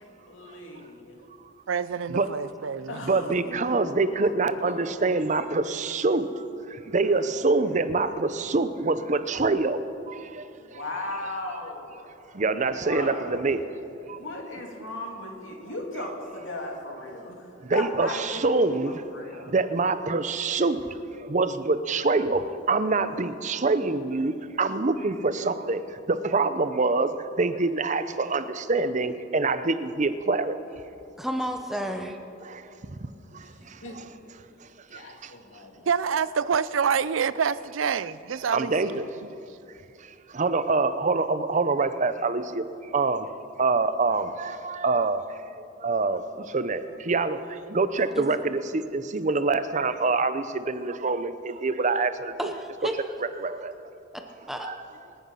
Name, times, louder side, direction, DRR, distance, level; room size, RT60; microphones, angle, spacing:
voice 1, 0.3-1.2 2.9-5.2 7.0-7.4 7.7-7.9 10.6-12.1 12.8-13.4 14.1-17.3 17.7-19.5 31.8-32.0 33.8-34.0 34.9-35.8, left 1 dB, 85° left, 0 dB, 2.8 m, -37 dB
voice 2, 1.7-3.0 35.9-39.0, right 6 dB, 85° right, 17 dB, 0.5 m, -27 dB
voice 3, 3.0-6.3 6.7-9.8 10.1-10.4 12.3-13.6 14.1-14.2 17.7-19.0 19.5-20.9 21.2-25.8 26.1-30.6 33.9-34.1 34.9-35.3 38.5-39.1 40.3-42.6 42.9-43.3 43.6-45.4 45.8-52.5 53.4-53.7 54.6-54.8, right 3 dB, 40° right, 12 dB, 0.7 m, -25 dB
voice 4, 31.2-32.1 48.1-48.5 52.4-53.0 54.1-54.2 54.5-54.7, equal, ahead, 5 dB, 0.8 m, -31 dB
25.0 x 9.3 x 5.6 m, 2.7 s
head